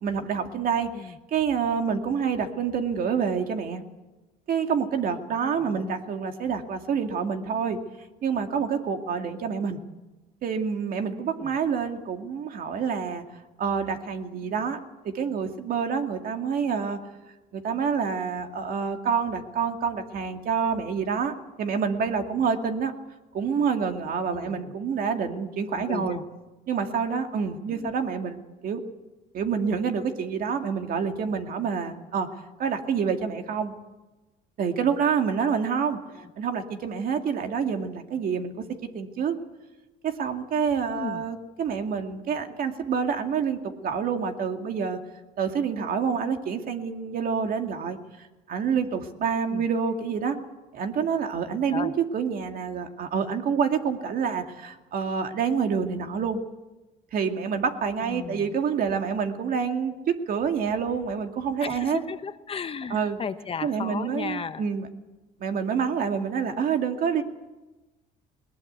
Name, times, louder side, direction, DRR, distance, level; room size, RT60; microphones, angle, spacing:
voice 1, 0.0-3.8 4.5-7.8 8.2-9.8 10.4-13.2 13.6-14.8 15.0-17.0 17.5-22.9 23.3-26.2 26.7-28.8 29.3-32.3 32.6-33.7 34.6-36.0 36.4-38.5 38.9-39.4 40.0-45.0 45.4-50.4 50.7-56.4 57.1-62.0 62.9-63.2 63.6-64.9 65.4-67.2, right 6 dB, 60° right, 5 dB, 2.3 m, -27 dB
voice 2, 5.5-6.0 11.4-11.6 24.3-24.8 25.7-26.3 27.7-27.9 36.1-36.3 40.9-41.2 49.5-49.7 51.7-51.9 58.0-58.6 61.6-64.7, left 6 dB, 35° left, 11 dB, 1.0 m, -35 dB
21.0 x 19.5 x 8.1 m, 1.1 s
cardioid pair, 110°, 17 cm